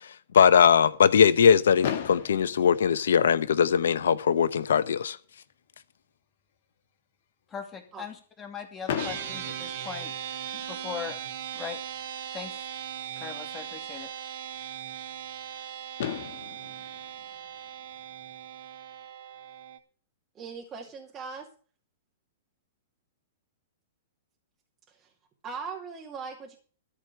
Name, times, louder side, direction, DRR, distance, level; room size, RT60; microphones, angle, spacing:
voice 1, 0.3-5.2, left 7 dB, 75° left, 0.9 m, -20 dB
Fireworks, 1.8-3.8 4.7-4.8 4.9-5.2 5.5-5.6 8.9-10.7 12.4-12.5 15.5-15.6 16.0-18.3, left 9 dB, 60° left, 1.7 m, -37 dB
voice 2, 7.5-10.1 10.5-11.2 11.5-11.8 12.3-12.6 13.2-14.1, left 7 dB, 20° left, 2.6 m, -39 dB
sound 1, 9.0-19.8, right 9 dB, 60° right, 2.2 m, -39 dB
voice 3, 20.4-21.5 25.0-25.1 25.4-26.6, right 5 dB, 25° right, 2.3 m, -39 dB
13.0 x 4.8 x 8.9 m
hypercardioid pair, 115°, 0 cm